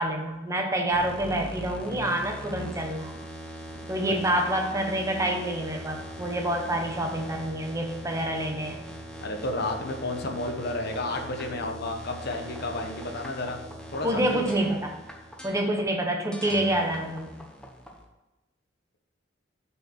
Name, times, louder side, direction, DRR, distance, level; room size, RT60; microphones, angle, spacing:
voice 1, 0.0-3.2 3.9-8.8 14.0-15.0 15.4-17.4, right 1 dB, 15° right, 2 dB, 0.9 m, -27 dB
sound 1, 0.9-18.0, equal, 5° left, 1.1 m, -41 dB
voice 2, 9.2-13.6 13.9-14.4, left 2 dB, 60° left, 4 dB, 1.0 m, -31 dB
6.5 x 4.6 x 6.1 m, 1.0 s
head